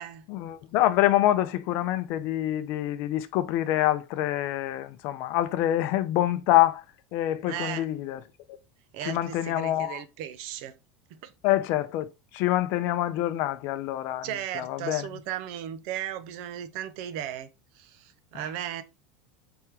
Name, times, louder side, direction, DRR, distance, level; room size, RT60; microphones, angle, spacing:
voice 1, 0.3-6.8 7.1-8.2 8.5-8.6 9.1-10.0 11.4-12.1 12.3-14.3 14.5-15.1, left 14 dB, 60° left, 0.5 m, -26 dB
voice 2, 7.5-7.8 8.9-10.8 11.1-11.3 14.2-17.5 17.7-18.8, right 11 dB, 65° right, 0.5 m, -36 dB
3.4 x 3.3 x 2.9 m
supercardioid pair, 120°, 4 cm